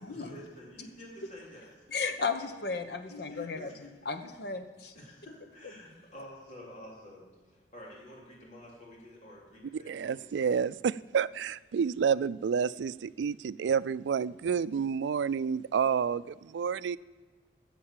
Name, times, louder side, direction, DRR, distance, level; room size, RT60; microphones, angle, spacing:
voice 1, 0.1-1.9 2.1-2.2 3.0-4.4 5.0-10.5, left 1 dB, 45° left, -4 dB, 3.6 m, -50 dB
voice 2, 1.9-4.9, left 4 dB, 65° left, 8 dB, 1.0 m, -34 dB
voice 3, 9.9-17.0, right 6 dB, 90° right, 18 dB, 0.3 m, -29 dB
11.5 x 7.5 x 7.5 m, 1.4 s
head